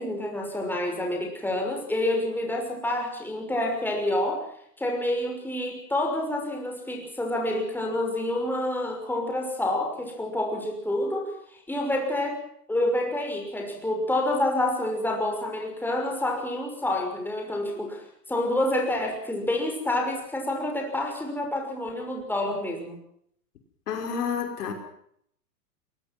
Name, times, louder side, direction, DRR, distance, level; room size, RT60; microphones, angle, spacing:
voice 1, 0.0-4.5 4.8-12.4 12.7-23.0, left 1 dB, 5° left, 2 dB, 6.1 m, -28 dB
voice 2, 23.9-24.7, left 6 dB, 70° left, 4 dB, 5.8 m, -29 dB
22.5 x 22.5 x 6.1 m, 0.68 s
hypercardioid pair, 115°, 48 cm